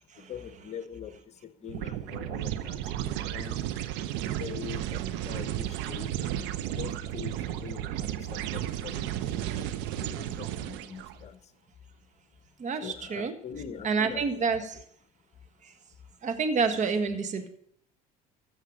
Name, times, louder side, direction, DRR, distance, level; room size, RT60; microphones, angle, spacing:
voice 1, 0.3-3.6 4.3-9.7 10.0-11.4 12.8-14.3 14.6-14.7, left 7 dB, 35° left, 11 dB, 1.1 m, -43 dB
sound 1, 1.7-11.1, right 12 dB, 70° right, 0.8 m, -33 dB
voice 2, 12.6-13.3 13.8-14.8 15.6-15.7 16.2-17.5, right 5 dB, 40° right, 8 dB, 1.6 m, -28 dB
15.0 x 6.5 x 5.1 m, 0.68 s
hypercardioid pair, 80°, 19 cm